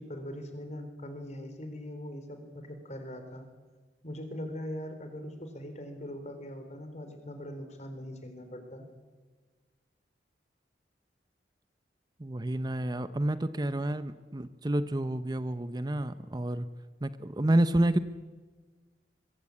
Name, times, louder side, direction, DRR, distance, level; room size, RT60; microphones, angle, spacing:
voice 1, 0.0-3.5 4.0-8.8, equal, 40° left, 7 dB, 4.0 m, -41 dB
voice 2, 12.2-16.7 17.0-18.0, right 1 dB, 25° right, 12 dB, 0.7 m, -29 dB
23.5 x 23.0 x 8.6 m, 1.4 s
head